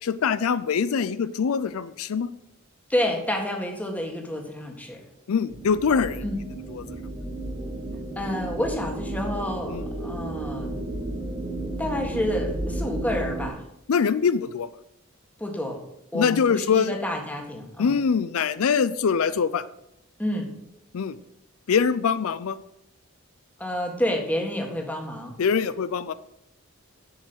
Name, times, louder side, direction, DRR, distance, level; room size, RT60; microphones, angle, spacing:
voice 1, 0.0-2.3 5.3-6.2 6.7-6.9 9.6-9.9 13.9-14.7 16.1-17.0 17.8-19.6 20.9-21.2 21.7-22.6 25.4-26.1, left 6 dB, 85° left, 15 dB, 0.4 m, -23 dB
voice 2, 2.9-5.0 6.2-6.4 8.1-10.7 11.8-13.6 15.4-15.8 16.1-18.0 20.2-20.5 23.6-25.4, left 1 dB, 5° left, 2 dB, 1.7 m, -29 dB
sound 1, 5.5-13.5, right 1 dB, 15° right, 1.5 m, -33 dB
7.8 x 6.3 x 8.0 m, 0.82 s
head